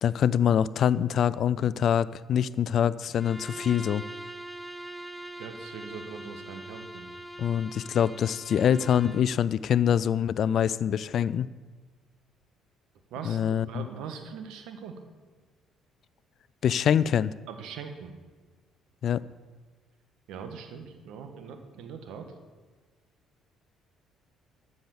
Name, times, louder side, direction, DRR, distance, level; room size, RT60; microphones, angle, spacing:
voice 1, 0.0-4.0 7.4-11.5 13.2-13.9 16.6-17.3 19.0-19.2, left 9 dB, 60° left, 18 dB, 0.4 m, -25 dB
Bowed string instrument, 3.1-9.3, right 1 dB, ahead, 1.1 m, -42 dB
voice 2, 5.4-7.2 13.1-13.4 13.7-15.0 17.5-18.1 20.3-22.3, right 6 dB, 70° right, 6 dB, 1.4 m, -41 dB
13.0 x 7.1 x 7.1 m, 1.3 s
hypercardioid pair, 60°, 0 cm